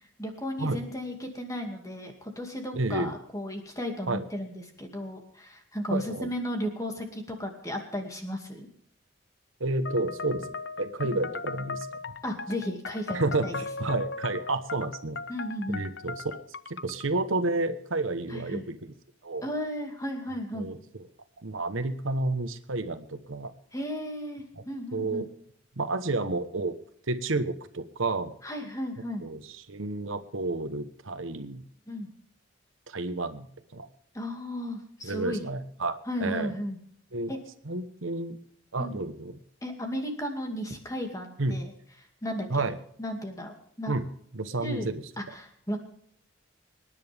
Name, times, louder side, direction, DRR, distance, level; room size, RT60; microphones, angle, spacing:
voice 1, 0.2-8.7 11.0-11.2 12.2-13.5 15.3-15.8 18.3-18.6 19.4-20.7 23.7-25.2 28.4-29.2 31.9-32.1 34.1-35.4 36.1-36.8 37.3-37.4 38.8-39.0 39.6-41.7 42.2-42.6 43.0-43.9 44.6-44.9 45.2-45.8, equal, 15° left, 3 dB, 2.3 m, -34 dB
voice 2, 2.7-3.1 4.1-4.2 5.9-6.3 9.6-11.9 13.1-15.2 15.7-18.9 19.2-19.5 20.5-21.1 21.4-23.5 24.6-24.7 24.9-25.3 25.8-26.8 27.1-28.3 29.2-31.6 32.9-33.9 35.0-36.5 37.1-37.3 37.6-38.4 38.7-39.3 41.4-41.6 42.5-42.8 43.9-44.0 44.3-45.0, right 2 dB, 90° right, 10 dB, 1.1 m, -31 dB
sound 1, 9.9-17.1, left 4 dB, 60° left, 0.6 m, -38 dB
25.5 x 10.5 x 3.5 m, 0.66 s
head